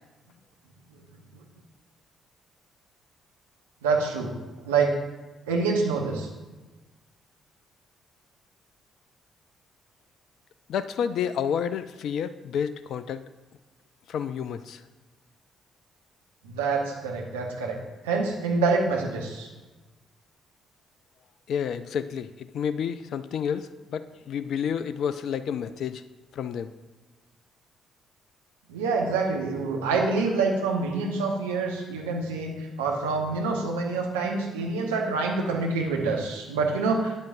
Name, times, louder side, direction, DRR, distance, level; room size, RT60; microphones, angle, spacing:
voice 1, 3.8-4.3 4.6-4.9 5.5-6.3 16.4-17.8 18.0-19.5 28.7-37.2, right 4 dB, 75° right, 0 dB, 1.1 m, -26 dB
voice 2, 10.7-13.2 14.1-14.8 21.5-22.3 22.5-26.0 26.3-26.7, left 8 dB, 60° left, 13 dB, 0.4 m, -30 dB
12.5 x 8.9 x 2.6 m, 1.2 s
figure-of-eight pair, 45°, 0 cm